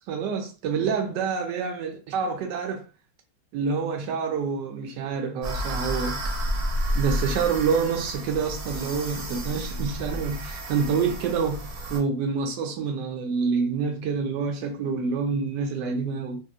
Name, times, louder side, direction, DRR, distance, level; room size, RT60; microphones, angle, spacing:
voice 1, 0.1-2.8 3.5-6.3 6.9-16.4, right 5 dB, 90° right, 1.2 m, -27 dB
sound 1, 5.4-12.0, equal, 60° right, 1.1 m, -31 dB
2.8 x 2.7 x 2.3 m
omnidirectional pair, 1.8 m